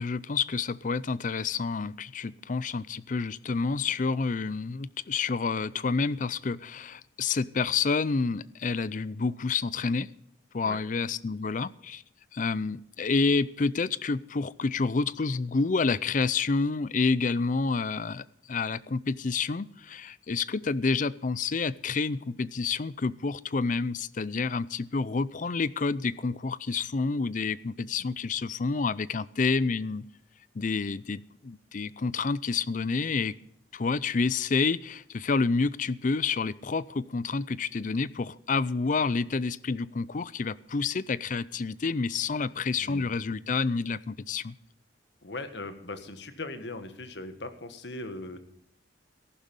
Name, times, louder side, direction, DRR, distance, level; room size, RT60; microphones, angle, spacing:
voice 1, 0.0-10.1 10.5-12.0 12.3-30.0 30.5-33.4 33.7-44.5, left 4 dB, 45° left, 19 dB, 0.5 m, -29 dB
voice 2, 42.7-43.2 45.2-48.4, left 2 dB, 75° left, 9 dB, 1.6 m, -39 dB
14.5 x 11.5 x 5.3 m, 0.75 s
head